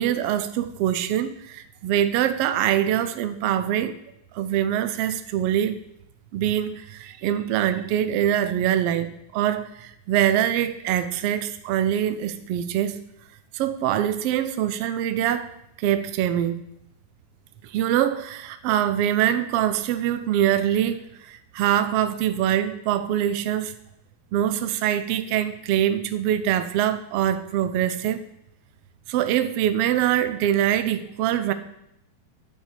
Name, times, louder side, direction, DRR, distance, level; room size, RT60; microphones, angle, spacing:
voice 1, 0.0-4.0 4.3-5.8 6.3-13.0 13.5-15.5 15.8-16.6 17.6-23.7 24.3-28.2 29.1-31.5, right 11 dB, 75° right, 11 dB, 1.4 m, -24 dB
10.0 x 5.6 x 8.5 m, 0.79 s
omnidirectional pair, 3.5 m